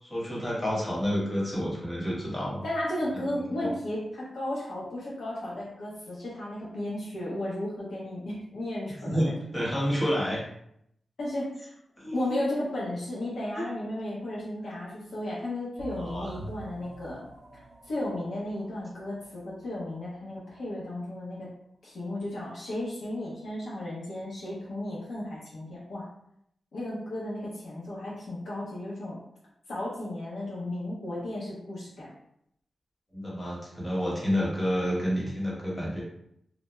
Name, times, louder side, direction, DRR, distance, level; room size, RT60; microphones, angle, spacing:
voice 1, 0.0-2.6 3.3-3.7 9.0-10.4 12.0-12.3 13.6-13.7 16.0-16.4 33.1-36.0, equal, 20° left, -6 dB, 1.0 m, -29 dB
voice 2, 2.6-9.2 11.2-11.7 12.1-17.3 17.8-21.5 21.8-26.1 26.7-29.2 29.7-32.1, left 1 dB, 80° left, -6 dB, 0.7 m, -34 dB
sound 1, 15.8-21.1, right 5 dB, 75° right, 0.4 m, -49 dB
2.2 x 2.0 x 3.0 m, 0.74 s
cardioid pair, 75°, 0 cm